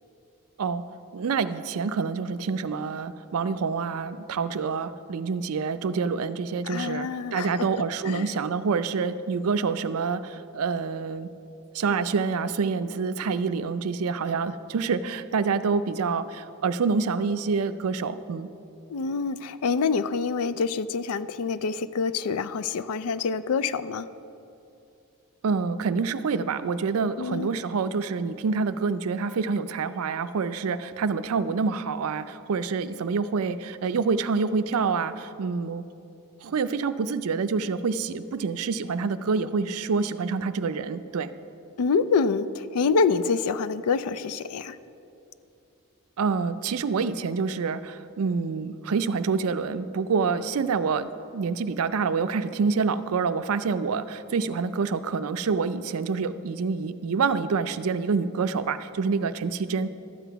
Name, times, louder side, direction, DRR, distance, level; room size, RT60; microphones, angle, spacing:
voice 1, 1.1-11.3 11.7-18.5 25.4-35.8 36.4-41.3 46.2-59.9, right 5 dB, 70° right, 12 dB, 0.4 m, -27 dB
voice 2, 6.6-7.7 8.0-8.2 18.9-24.1 27.2-27.5 41.8-44.8, left 5 dB, 75° left, 15 dB, 0.4 m, -26 dB
12.0 x 7.9 x 4.6 m, 2.7 s
head